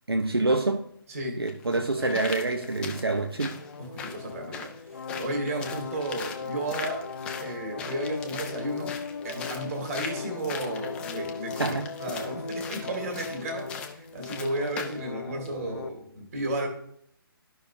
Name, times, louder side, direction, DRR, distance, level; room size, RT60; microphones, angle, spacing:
voice 1, 0.1-0.9 1.4-3.6 11.6-11.9, right 2 dB, 80° right, 0.6 m, -27 dB
sound 1, 0.6-0.7 1.5-15.0 15.4-15.5, left 6 dB, 10° left, 0.4 m, -41 dB
voice 2, 1.1-1.4 3.8-4.7 5.2-7.1 7.4-9.0 9.2-16.7, right 1 dB, 40° right, 2.0 m, -33 dB
sound 2, 1.9-15.9, left 5 dB, 60° left, 0.5 m, -38 dB
13.0 x 5.5 x 2.7 m
figure-of-eight pair, 135°, 13 cm